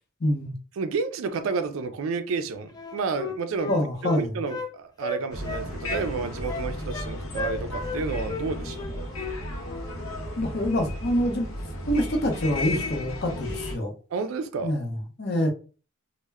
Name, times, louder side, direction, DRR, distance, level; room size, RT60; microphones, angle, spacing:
voice 1, 0.2-0.5 3.7-4.4 10.4-11.5 11.9-13.9 14.6-15.5, left 1 dB, 50° left, 0.7 m, -26 dB
voice 2, 0.8-3.7 4.2-9.1 14.1-14.7, right 4 dB, 70° right, 0.4 m, -30 dB
Wind instrument woodwind instrument, 2.7-4.7 5.0-6.1 6.5-7.1 7.3-8.0 8.3-8.5 8.8-9.4 9.7-9.9, left 3 dB, 20° left, 0.3 m, -34 dB
sound 1, 5.3-13.8, left 1 dB, 85° left, 0.7 m, -34 dB
2.1 x 2.1 x 3.4 m
head